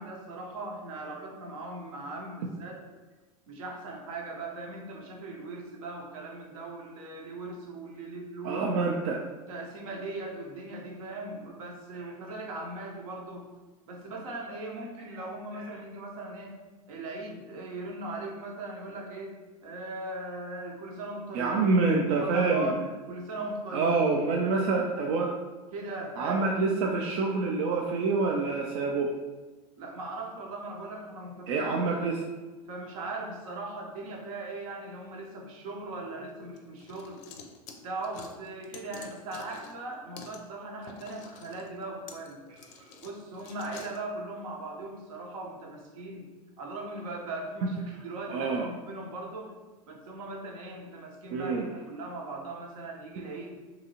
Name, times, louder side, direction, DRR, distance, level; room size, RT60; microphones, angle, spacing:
voice 1, 0.0-2.8 3.5-8.6 9.5-13.5 13.9-16.6 16.9-19.4 19.6-21.7 22.2-24.0 24.4-24.7 25.0-25.1 25.7-26.5 29.8-32.1 32.7-37.2 37.8-42.4 43.0-46.3 46.6-49.5 49.9-53.6, right 2 dB, 70° right, 0 dB, 0.8 m, -39 dB
voice 2, 8.4-9.2 12.0-12.1 15.1-15.7 21.3-22.7 23.7-25.3 26.2-29.1 31.5-32.2 42.7-42.8 47.6-47.7 48.3-48.7 51.3-51.7, right 3 dB, 50° right, 0 dB, 0.4 m, -27 dB
sound 1, 36.6-39.8 40.2-40.4 40.8-44.0, left 5 dB, 60° left, 0.4 m, -48 dB
2.7 x 2.3 x 2.8 m, 1.3 s
hypercardioid pair, 95°, 19 cm